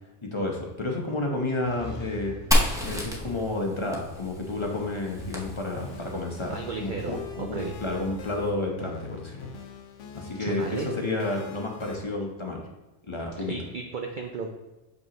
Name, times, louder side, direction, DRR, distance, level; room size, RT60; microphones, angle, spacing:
voice 1, 0.2-2.3 2.8-6.5 6.8-9.5 10.1-12.6 13.1-13.5, left 2 dB, 30° left, 0 dB, 0.8 m, -31 dB
sound 1, 1.6-8.4, equal, 50° left, 1.4 m, -45 dB
Fire, 2.5-6.2, equal, 5° right, 0.7 m, -29 dB
sound 2, 4.6-12.0, left 5 dB, 85° left, 1.0 m, -44 dB
voice 2, 6.5-7.8 10.4-10.9 13.3-14.5, right 4 dB, 55° right, 2 dB, 0.6 m, -34 dB
6.2 x 5.3 x 2.9 m, 1.0 s
omnidirectional pair, 1.2 m